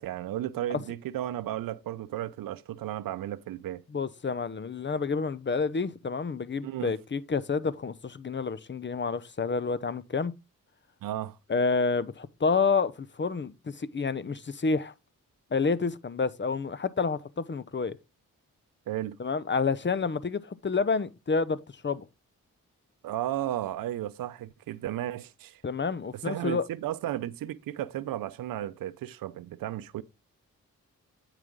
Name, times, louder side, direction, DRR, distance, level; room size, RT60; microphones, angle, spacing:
voice 1, 0.0-3.8 6.6-6.9 11.0-11.4 18.9-19.2 23.0-25.6 26.1-30.0, right 13 dB, 85° right, 0.6 m, -34 dB
voice 2, 3.9-10.3 11.5-14.9 15.5-18.0 19.2-21.6 21.8-22.0 25.6-26.7, left 4 dB, 35° left, 0.8 m, -29 dB
9.3 x 4.9 x 3.7 m
cardioid pair, 50°, 34 cm